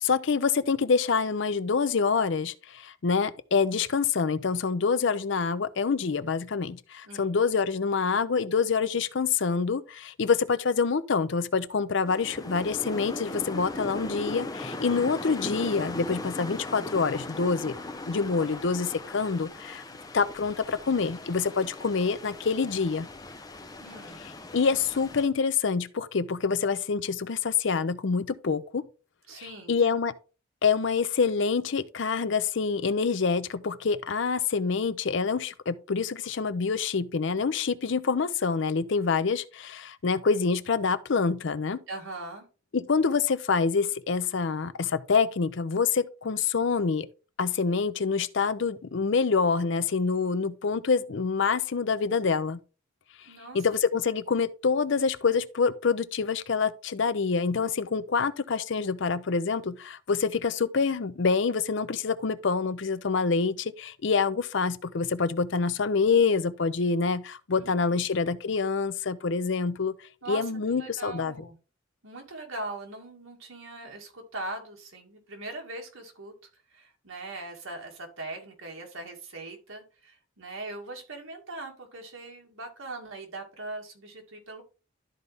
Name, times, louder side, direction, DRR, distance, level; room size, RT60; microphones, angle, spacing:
voice 1, 0.0-17.8 18.1-19.8 20.1-23.1 24.5-28.8 29.7-30.1 30.6-41.8 42.7-47.1 47.4-52.6 53.5-69.9 70.3-71.3, left 5 dB, 60° left, 0.5 m, -26 dB
voice 2, 7.0-7.4 23.8-24.2 29.3-29.7 41.9-42.5 53.2-53.7 67.6-68.1 70.2-71.6 72.0-76.3 76.7-84.6, right 2 dB, 75° right, 2.2 m, -40 dB
sound 1, 12.1-25.3, left 2 dB, 20° left, 0.6 m, -38 dB
12.5 x 4.1 x 3.4 m
head